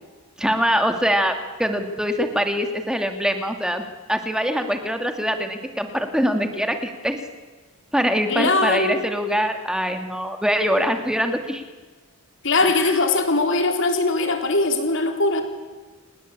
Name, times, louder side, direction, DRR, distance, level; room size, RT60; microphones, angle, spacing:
voice 1, 0.4-7.2 7.9-11.6 12.6-13.0, equal, 5° right, 6 dB, 2.3 m, -23 dB
voice 2, 8.3-9.0 12.4-15.4, left 3 dB, 55° left, 5 dB, 3.8 m, -21 dB
29.5 x 19.5 x 8.7 m, 1.3 s
head